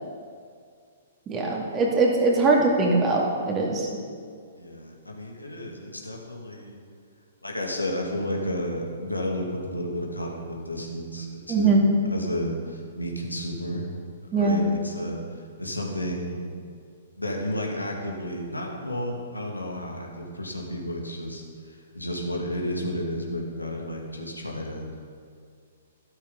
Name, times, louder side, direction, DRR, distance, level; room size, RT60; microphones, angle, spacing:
voice 1, 1.3-3.9 11.5-11.8 14.3-14.6, right 3 dB, 20° right, -2 dB, 2.3 m, -21 dB
voice 2, 4.5-6.8 7.4-11.8 12.1-13.9 14.3-15.2 15.6-16.4 17.2-25.0, equal, 85° left, 0 dB, 2.2 m, -32 dB
13.0 x 12.5 x 4.0 m, 2.2 s
figure-of-eight pair, 115°, 0 cm